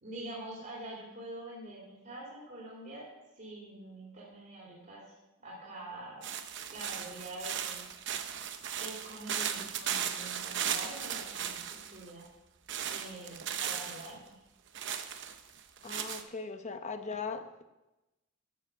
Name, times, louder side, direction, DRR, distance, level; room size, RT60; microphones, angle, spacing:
voice 1, 0.0-3.1 3.3-5.0 5.4-6.3 6.7-7.9 8.8-12.2 12.9-14.4, right 1 dB, 45° right, 3.2 m, -45 dB
sound 1, 6.2-12.1 12.7-14.1 14.7-16.2, right 9 dB, 60° right, 0.9 m, -37 dB
voice 2, 15.8-17.6, left 4 dB, 35° left, 0.9 m, -39 dB
12.5 x 7.2 x 6.5 m
head